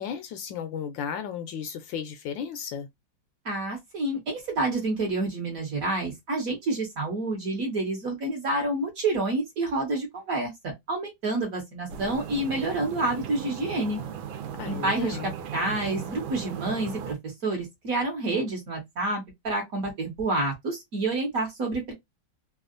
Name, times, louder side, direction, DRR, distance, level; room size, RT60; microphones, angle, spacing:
voice 1, 0.0-2.9 14.6-15.3, left 7 dB, 75° left, 1.2 m, -34 dB
voice 2, 3.4-14.0 14.6-15.2 15.5-21.9, right 2 dB, 50° right, 1.3 m, -28 dB
sound 1, 11.9-17.1, right 8 dB, 80° right, 1.4 m, -37 dB
3.5 x 2.3 x 2.4 m
omnidirectional pair, 2.3 m